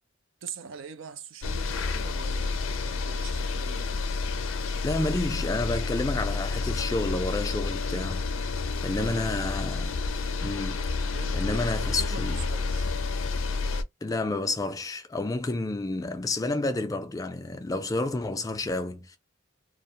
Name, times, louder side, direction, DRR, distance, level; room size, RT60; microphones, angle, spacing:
voice 1, 0.4-3.9 9.0-9.5 11.1-12.9, right 6 dB, 75° right, 0.5 m, -43 dB
sound 1, 1.4-13.8, left 4 dB, 85° left, 0.4 m, -30 dB
voice 2, 4.8-8.5 8.8-10.0 10.4-12.4 14.0-19.2, left 2 dB, 20° left, 0.3 m, -30 dB
2.4 x 2.1 x 2.7 m
head